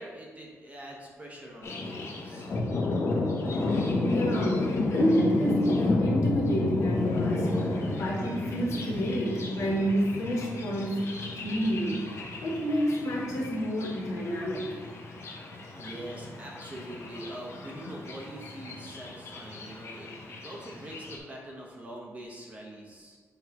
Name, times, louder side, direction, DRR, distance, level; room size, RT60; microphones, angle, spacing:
voice 1, 0.0-2.5 15.7-23.2, right 1 dB, 25° right, -2 dB, 1.1 m, -44 dB
Thunder, 1.6-21.2, left 2 dB, 55° left, 1.0 m, -32 dB
voice 2, 4.0-7.5 7.9-11.0 11.4-12.0 12.4-14.7, equal, 70° left, -4 dB, 1.8 m, -29 dB
7.1 x 3.2 x 4.7 m, 1.5 s
wide cardioid pair, 155°, 6 cm